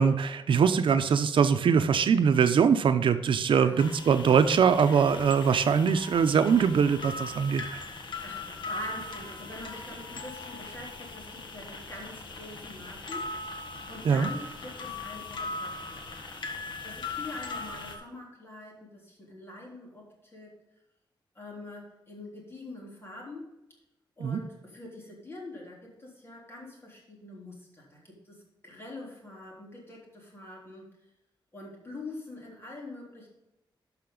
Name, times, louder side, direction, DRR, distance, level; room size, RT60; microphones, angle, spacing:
voice 1, 0.0-7.8 14.0-14.3 24.2-24.4, right 6 dB, 80° right, 9 dB, 0.7 m, -22 dB
sound 1, 3.8-18.0, left 3 dB, 65° left, 1.5 m, -39 dB
voice 2, 8.2-13.3 13.9-16.2 16.8-20.6 21.4-23.6 24.2-30.9 31.5-33.3, left 2 dB, 30° left, -3 dB, 3.5 m, -44 dB
12.0 x 5.8 x 3.9 m, 0.92 s
wide cardioid pair, 135°, 8 cm